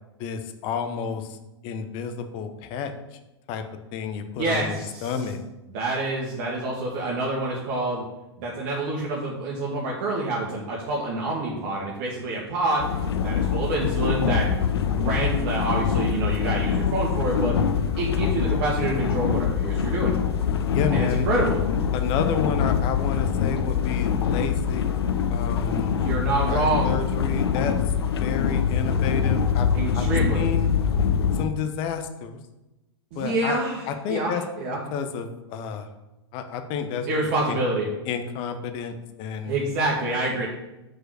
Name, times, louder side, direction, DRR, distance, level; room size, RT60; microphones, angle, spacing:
voice 1, 0.2-1.4 1.6-3.2 3.5-3.6 3.9-5.4 20.7-21.3 21.9-24.8 25.3-26.0 26.5-27.8 28.1-29.7 29.9-30.1 30.3-30.7 31.3-32.4 33.2-33.6 33.9-34.4 34.9-35.9 36.3-37.1 37.5-37.6 38.1-39.6, left 6 dB, 40° left, 8 dB, 1.0 m, -30 dB
voice 2, 4.4-5.1 5.7-8.0 8.4-12.9 13.2-17.6 18.0-20.1 20.9-21.6 25.9-26.9 29.7-30.5 33.1-33.8 34.1-34.8 37.1-37.9 39.5-40.5, right 2 dB, 45° right, -4 dB, 1.8 m, -27 dB
sound 1, 12.8-31.5, left 7 dB, 65° left, 0.7 m, -24 dB
6.1 x 5.3 x 6.5 m, 0.99 s
figure-of-eight pair, 100°, 14 cm